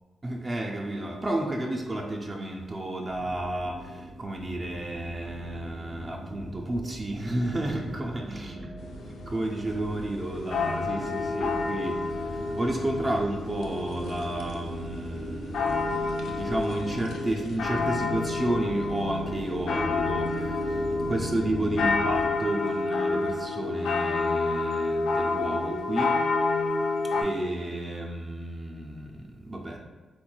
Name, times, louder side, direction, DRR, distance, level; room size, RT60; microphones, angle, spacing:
voice 1, 0.2-8.6 9.3-15.7 16.2-26.2 27.2-29.8, right 1 dB, 25° right, 1 dB, 0.3 m, -31 dB
sound 1, 3.1-22.2, right 1 dB, 60° right, 0.7 m, -39 dB
sound 2, 9.2-9.3 9.5-9.6 10.5-27.2, left 3 dB, 90° left, 0.4 m, -29 dB
3.5 x 3.0 x 2.2 m, 1.3 s
wide cardioid pair, 120°, 0 cm